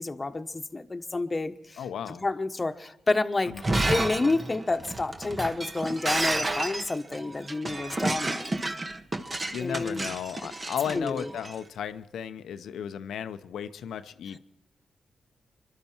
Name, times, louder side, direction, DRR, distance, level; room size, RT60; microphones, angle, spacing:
voice 1, 0.0-1.8 2.2-3.5 3.8-8.6 9.6-10.1 10.9-11.3, left 3 dB, 30° left, 1.2 m, -29 dB
voice 2, 1.8-2.2 9.5-14.4, left 8 dB, 80° left, 0.7 m, -34 dB
Shatter, 3.5-11.5, right 2 dB, 35° right, 1.4 m, -31 dB
24.0 x 12.0 x 4.5 m
supercardioid pair, 50°, 0 cm